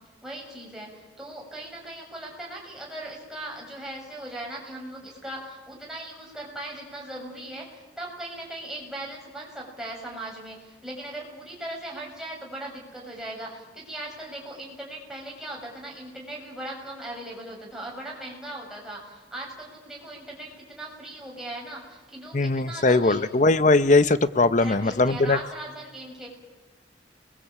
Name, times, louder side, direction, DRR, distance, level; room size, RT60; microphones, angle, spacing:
voice 1, 0.2-23.3 24.6-26.3, right 1 dB, 5° right, -3 dB, 6.9 m, -39 dB
voice 2, 22.3-25.4, left 3 dB, 40° left, 14 dB, 0.8 m, -20 dB
29.0 x 21.5 x 8.6 m, 1.3 s
head